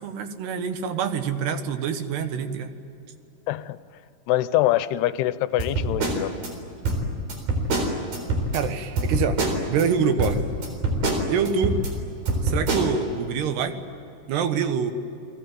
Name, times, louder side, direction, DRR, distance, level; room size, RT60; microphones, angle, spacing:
voice 1, 0.0-2.7 8.5-9.4 9.7-10.4 11.3-11.8 12.4-13.8 14.3-14.9, right 6 dB, 85° right, 8 dB, 3.6 m, -25 dB
voice 2, 3.5-3.8 4.3-6.3, left 14 dB, 80° left, 14 dB, 2.8 m, -24 dB
sound 1, 5.6-6.5 6.8-8.6 9.0-9.9 10.2-11.9 12.3-12.9, right 1 dB, 60° right, 5.6 m, -25 dB
30.0 x 21.0 x 9.2 m, 2.7 s
omnidirectional pair, 4.6 m